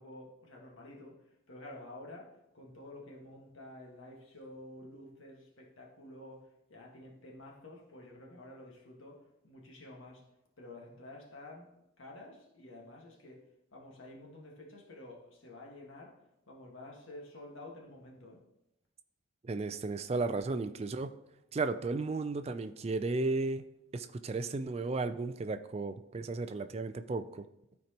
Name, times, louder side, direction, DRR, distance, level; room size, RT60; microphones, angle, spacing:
voice 1, 0.0-10.2 10.6-11.7 12.0-13.5 13.7-16.2 16.5-18.4, left 1 dB, 70° left, -1 dB, 1.5 m, -50 dB
voice 2, 19.4-21.2 21.5-27.5, right 3 dB, 30° right, 9 dB, 0.3 m, -34 dB
13.0 x 4.5 x 2.9 m, 0.87 s
head